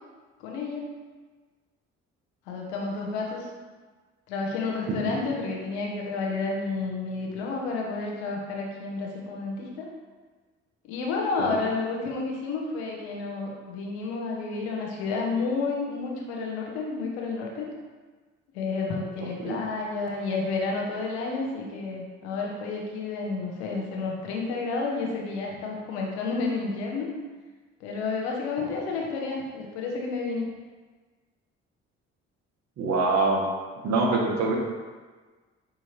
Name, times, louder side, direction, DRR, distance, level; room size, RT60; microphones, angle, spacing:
voice 1, 0.4-0.9 2.5-3.5 4.3-9.9 10.9-17.7 18.5-27.1 27.8-30.4, left 4 dB, 90° left, -1 dB, 0.7 m, -30 dB
voice 2, 32.8-33.4 33.8-34.6, right 3 dB, 55° right, 0 dB, 0.9 m, -24 dB
5.1 x 2.8 x 2.9 m, 1.4 s
hypercardioid pair, 50°, 32 cm